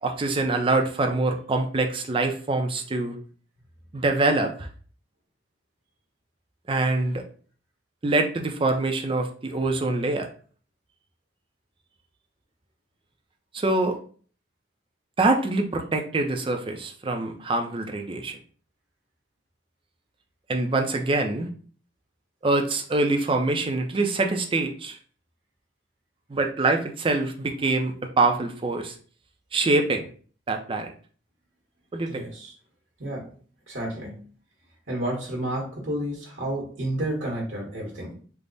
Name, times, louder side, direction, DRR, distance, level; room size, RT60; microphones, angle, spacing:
voice 1, 0.0-3.2 3.9-4.7 6.7-7.2 8.0-10.3 13.5-14.0 15.2-18.4 20.5-21.5 22.4-25.0 26.3-28.9 29.5-30.0 30.5-30.9 31.9-32.3, right 2 dB, 30° right, 5 dB, 0.4 m, -24 dB
voice 2, 32.1-32.5 33.0-33.3 33.7-34.2 34.9-38.1, right 1 dB, 75° right, -1 dB, 1.1 m, -31 dB
3.4 x 2.0 x 3.8 m, 0.43 s
head